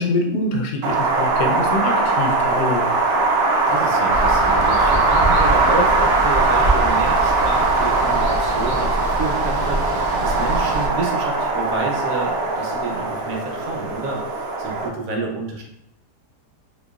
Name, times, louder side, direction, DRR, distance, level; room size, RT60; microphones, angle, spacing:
voice 1, 0.0-2.9, left 2 dB, 90° left, 2 dB, 1.2 m, -24 dB
Wind, 0.8-14.9, right 3 dB, 90° right, 0.5 m, -20 dB
voice 2, 3.7-15.6, right 3 dB, 65° right, 0 dB, 1.0 m, -29 dB
Water, 4.1-10.9, right 1 dB, 40° right, 0.9 m, -26 dB
3.9 x 2.8 x 2.3 m, 0.77 s
omnidirectional pair, 1.7 m